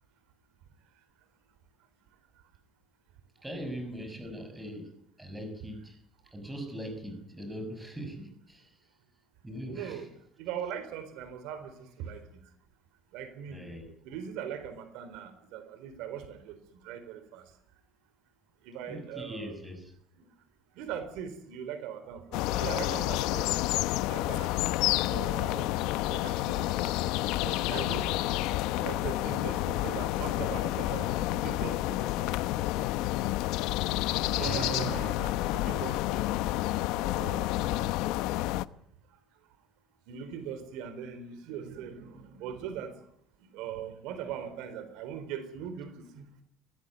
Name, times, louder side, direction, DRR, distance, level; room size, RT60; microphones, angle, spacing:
voice 1, 3.4-4.9 5.2-6.0 6.3-8.8 9.4-10.1 13.5-13.9 18.9-19.9 34.3-34.8, equal, 5° right, 7 dB, 5.8 m, -41 dB
voice 2, 9.7-10.1 10.4-12.2 13.1-13.6 14.0-16.6 16.8-17.4 18.7-19.6 20.8-23.5 24.1-24.6 25.1-25.8 26.1-27.0 27.4-28.1 28.8-32.4 34.2-36.3 37.0-37.6 40.1-42.9 43.5-46.4, right 8 dB, 80° right, 11 dB, 4.2 m, -40 dB
sound 1, 22.3-38.7, left 16 dB, 80° left, 0.9 m, -29 dB
23.0 x 18.0 x 9.6 m, 0.72 s
cardioid pair, 165°, 0 cm